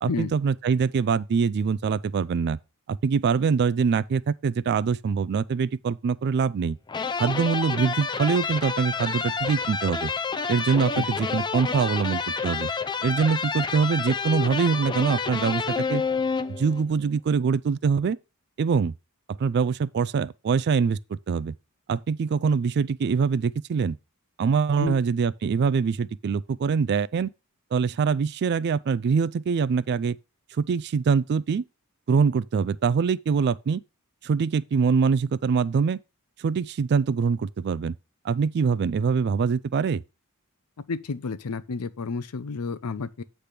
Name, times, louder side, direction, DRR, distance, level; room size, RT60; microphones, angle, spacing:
voice 1, 0.0-2.6 2.9-6.8 7.2-10.1 10.5-12.7 13.0-16.0 16.5-18.2 18.6-18.9 19.3-21.5 21.9-24.0 24.4-27.3 27.7-30.2 30.6-31.6 32.1-33.8 34.2-36.0 36.4-37.9 38.2-40.0, right 5 dB, 50° right, 0.3 m, -24 dB
sound 1, 6.9-16.9, left 5 dB, 20° left, 0.4 m, -29 dB
voice 2, 40.9-43.2, left 4 dB, 90° left, 0.6 m, -31 dB
8.3 x 3.4 x 5.8 m
head